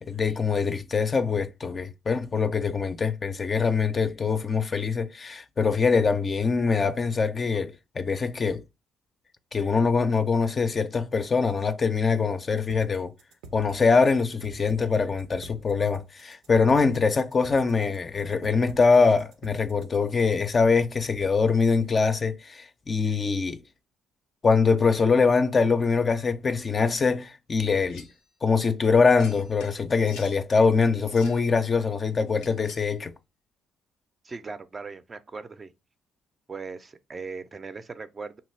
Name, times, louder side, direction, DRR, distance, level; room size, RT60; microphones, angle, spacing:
voice 1, 0.0-8.6 9.5-13.1 13.5-23.6 24.4-28.1 28.4-33.1, left 4 dB, 40° left, 0.4 m, -23 dB
sound 1, 12.7-20.7, right 3 dB, 90° right, 0.5 m, -47 dB
sound 2, 27.9-28.2 29.2-30.4 31.0-31.5 32.4-32.9, left 6 dB, 90° left, 0.5 m, -48 dB
voice 2, 34.2-35.7 36.5-38.4, right 4 dB, 35° right, 0.4 m, -39 dB
3.0 x 2.3 x 3.1 m
supercardioid pair, 70°, 0 cm